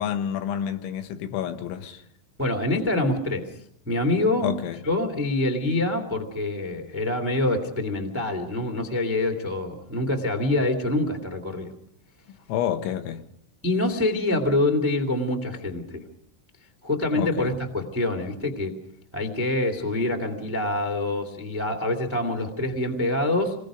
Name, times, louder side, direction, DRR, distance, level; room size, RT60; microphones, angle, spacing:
voice 1, 0.0-2.0 4.4-4.8 12.5-13.3 17.1-17.5, left 9 dB, 80° left, 3.4 m, -29 dB
voice 2, 2.4-3.5 3.8-4.5 4.8-11.7 13.6-16.0 16.8-18.7 19.1-23.5, left 2 dB, 10° right, 0.7 m, -25 dB
27.5 x 21.0 x 5.1 m
omnidirectional pair, 5.5 m